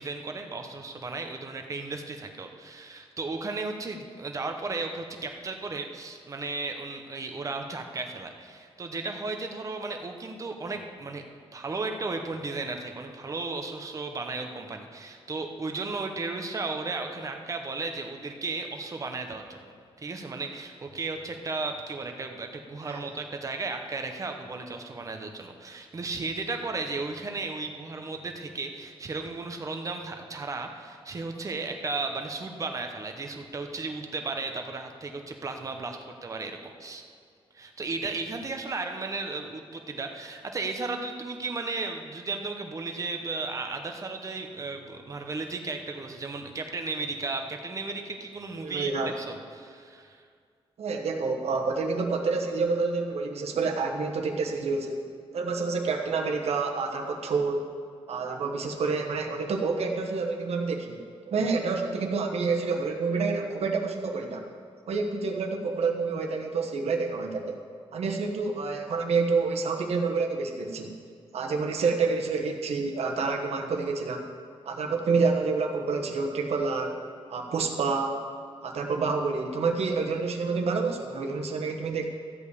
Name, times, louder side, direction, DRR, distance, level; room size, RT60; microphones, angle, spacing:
voice 1, 0.0-11.2 11.5-37.0 37.5-50.3, right 3 dB, 30° right, 4 dB, 1.0 m, -35 dB
voice 2, 48.6-49.1 50.8-55.0 55.3-57.7 58.1-64.4 64.9-67.6 67.9-70.9 71.3-74.2 74.6-76.9 77.3-78.1 78.6-82.0, right 4 dB, 80° right, 2 dB, 1.3 m, -28 dB
14.0 x 5.4 x 8.2 m, 2.1 s
wide cardioid pair, 165°, 11 cm